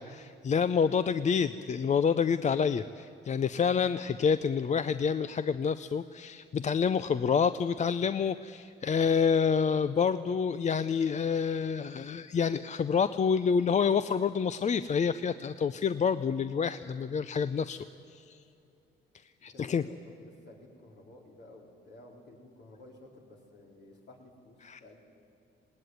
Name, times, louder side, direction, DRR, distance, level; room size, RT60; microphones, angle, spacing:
voice 1, 0.0-17.8 18.1-18.4 19.4-19.8 24.6-24.8, left 6 dB, 35° left, 13 dB, 0.5 m, -28 dB
voice 2, 19.4-25.0, left 1 dB, 60° left, 0 dB, 4.4 m, -53 dB
19.5 x 18.5 x 9.4 m, 2.6 s
cardioid pair, 90°, 20 cm